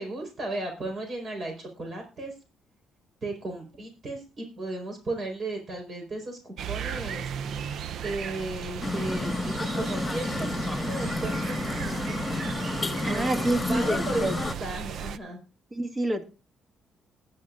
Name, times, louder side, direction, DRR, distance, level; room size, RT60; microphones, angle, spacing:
voice 1, 0.0-2.3 3.2-7.3 8.0-12.6 13.1-15.4, right 2 dB, 50° right, 3 dB, 4.6 m, -35 dB
sound 1, 6.6-15.2, right 8 dB, 70° right, 0.5 m, -36 dB
sound 2, 8.8-14.5, left 2 dB, 20° left, 1.6 m, -30 dB
voice 2, 13.0-14.3 15.7-16.2, right 1 dB, 30° right, 6 dB, 1.8 m, -27 dB
20.0 x 10.0 x 2.5 m, 0.33 s
cardioid pair, 90°, 0 cm